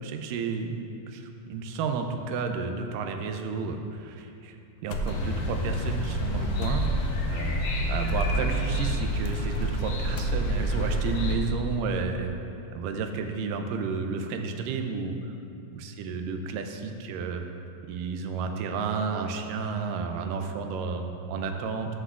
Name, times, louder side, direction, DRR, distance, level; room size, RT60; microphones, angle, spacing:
voice 1, 0.0-4.6 4.8-6.8 7.3-7.6 7.9-12.4 12.8-15.2 15.8-17.4 17.9-22.0, right 5 dB, 85° right, 5 dB, 2.2 m, -32 dB
sound 1, 4.9-5.6 5.8-6.0 6.6-7.2 8.1-8.4 9.2-9.8 10.1-10.8, equal, 85° left, 1.6 m, -33 dB
sound 2, 5.1-11.4, equal, 65° left, 1.7 m, -28 dB
13.5 x 7.7 x 2.4 m, 2.7 s
omnidirectional pair, 3.8 m